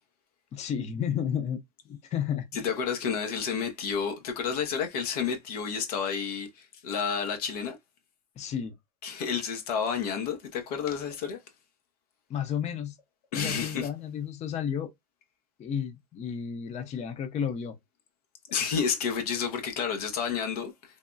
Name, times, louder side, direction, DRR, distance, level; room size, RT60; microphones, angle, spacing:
voice 1, 0.5-2.7 8.4-8.7 12.3-13.0 13.3-14.9 15.6-17.8, left 8 dB, 35° left, 0.6 m, -32 dB
voice 2, 2.5-7.8 9.0-11.4 13.3-13.9 18.5-20.7, left 6 dB, 80° left, 0.9 m, -30 dB
3.4 x 2.2 x 2.5 m
supercardioid pair, 110°, 19 cm